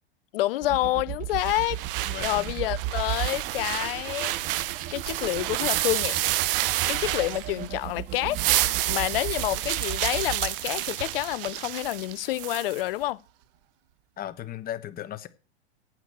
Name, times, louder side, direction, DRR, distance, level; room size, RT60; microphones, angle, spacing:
voice 1, 0.3-1.8 2.2-4.3 4.9-6.2 6.9-8.4 8.9-13.2, left 17 dB, 55° left, 0.7 m, -28 dB
sound 1, 0.6-10.8, right 14 dB, 25° right, 0.5 m, -36 dB
sound 2, 1.4-7.8 8.1-12.8, right 15 dB, 55° right, 1.0 m, -29 dB
voice 2, 2.1-2.5 14.2-15.3, left 11 dB, 25° left, 1.1 m, -36 dB
9.0 x 8.2 x 7.9 m
hypercardioid pair, 105°, 33 cm